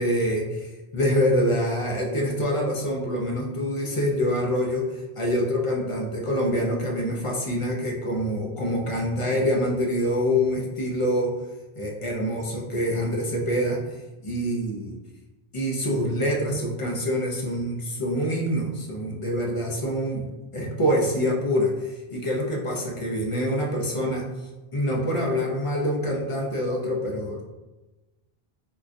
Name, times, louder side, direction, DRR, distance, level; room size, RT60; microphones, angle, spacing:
voice 1, 0.0-11.4 11.8-13.9 14.2-15.0 15.5-24.3 24.7-27.4, equal, 45° left, -1 dB, 0.4 m, -26 dB
3.8 x 2.2 x 2.5 m, 1.1 s
omnidirectional pair, 1.0 m